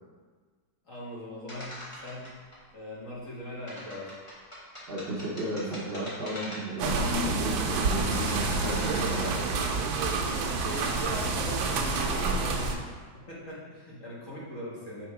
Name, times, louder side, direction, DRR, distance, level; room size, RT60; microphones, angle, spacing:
voice 1, 0.8-2.3 2.7-4.1 8.1-9.3 9.9-12.8 13.3-15.1, left 1 dB, 45° left, -7 dB, 1.7 m, -41 dB
sound 1, 1.5-2.6 3.7-6.9 7.3-9.9 10.4-11.0, equal, 20° left, 1.3 m, -42 dB
voice 2, 4.9-9.5, right 1 dB, 60° right, -5 dB, 0.6 m, -33 dB
sound 2, 6.8-12.8, right 3 dB, 85° right, 1.4 m, -28 dB
5.8 x 3.6 x 4.7 m, 1.5 s
omnidirectional pair, 2.1 m